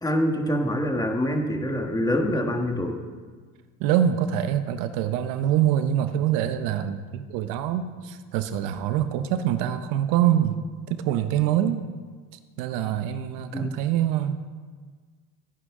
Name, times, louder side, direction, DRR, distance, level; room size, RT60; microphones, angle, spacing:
voice 1, 0.0-3.0 13.5-13.8, equal, 10° left, 3 dB, 1.4 m, -25 dB
voice 2, 3.8-11.8 12.6-14.4, right 10 dB, 85° right, 10 dB, 0.9 m, -25 dB
14.5 x 9.5 x 3.7 m, 1.5 s
cardioid pair, 105°, 32 cm